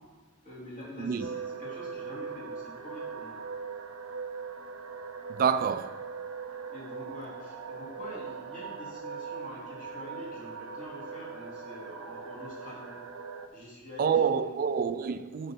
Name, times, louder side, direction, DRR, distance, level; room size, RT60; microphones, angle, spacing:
voice 1, 0.4-3.4 6.7-12.9 13.5-14.5, equal, 35° left, 2.6 m, -45 dB
sound 1, 1.2-13.5, right 5 dB, 70° right, 0.7 m, -40 dB
voice 2, 5.3-6.1 14.0-15.5, right 6 dB, 40° right, 0.3 m, -27 dB
9.3 x 3.8 x 5.7 m
head